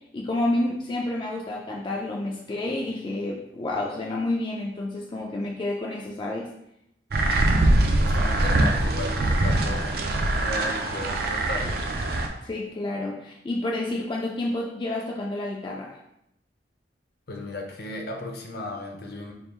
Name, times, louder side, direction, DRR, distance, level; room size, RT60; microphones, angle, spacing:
voice 1, 0.1-6.5 12.4-16.0, left 2 dB, 25° left, -2 dB, 0.3 m, -29 dB
sound 1, 7.1-12.3, right 1 dB, 60° right, 0.5 m, -23 dB
voice 2, 7.6-10.0 10.3-11.8 17.3-19.3, left 1 dB, 60° left, 2 dB, 0.7 m, -35 dB
3.5 x 2.4 x 4.4 m, 0.81 s
head